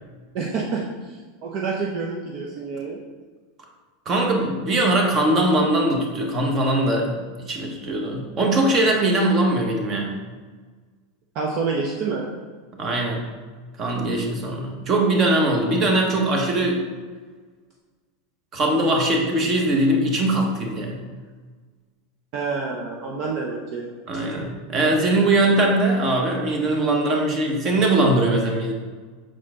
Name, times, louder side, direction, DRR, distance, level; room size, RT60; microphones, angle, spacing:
voice 1, 0.3-3.0 11.3-12.3 22.3-23.9, right 4 dB, 50° right, -1 dB, 0.7 m, -28 dB
voice 2, 4.0-7.1 7.4-10.1 12.8-13.3 13.8-16.8 18.5-21.0 24.1-28.7, right 1 dB, 35° right, 1 dB, 1.2 m, -21 dB
6.3 x 4.3 x 3.7 m, 1.4 s
supercardioid pair, 135°, 0 cm